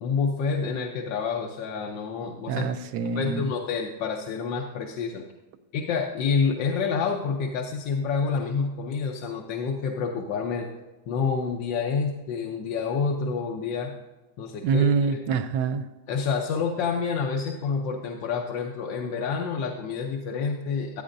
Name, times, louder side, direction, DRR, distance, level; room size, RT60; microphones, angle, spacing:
voice 1, 0.0-2.7 3.1-5.2 5.7-10.7 11.1-13.9 14.4-15.2 16.1-21.0, left 5 dB, 80° left, 1 dB, 1.5 m, -28 dB
voice 2, 2.5-3.5 14.6-15.9, right 5 dB, 75° right, 9 dB, 1.2 m, -25 dB
14.0 x 9.2 x 2.6 m, 1.1 s
omnidirectional pair, 2.0 m